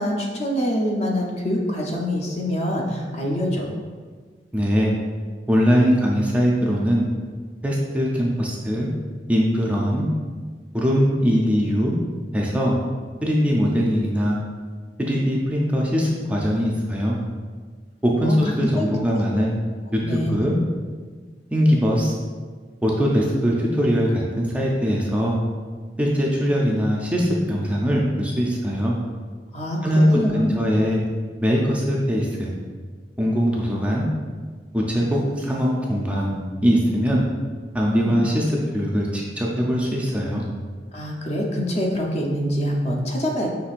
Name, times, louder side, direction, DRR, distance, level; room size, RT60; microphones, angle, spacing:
voice 1, 0.0-3.7 18.2-18.9 20.0-20.5 29.5-29.8 30.1-30.6 37.9-38.2 40.9-43.5, equal, 40° left, -1 dB, 0.6 m, -25 dB
voice 2, 4.5-4.9 5.5-7.1 7.6-8.9 9.3-10.1 10.7-12.0 12.3-12.8 13.2-14.4 15.0-17.2 18.0-19.6 19.9-20.6 21.5-22.1 22.8-25.4 26.0-29.0 29.8-31.0 31.4-32.5 33.2-34.1 34.7-37.2 37.7-38.4 38.7-40.5, equal, 10° right, -3 dB, 0.4 m, -21 dB
5.9 x 3.2 x 2.5 m, 1.5 s
head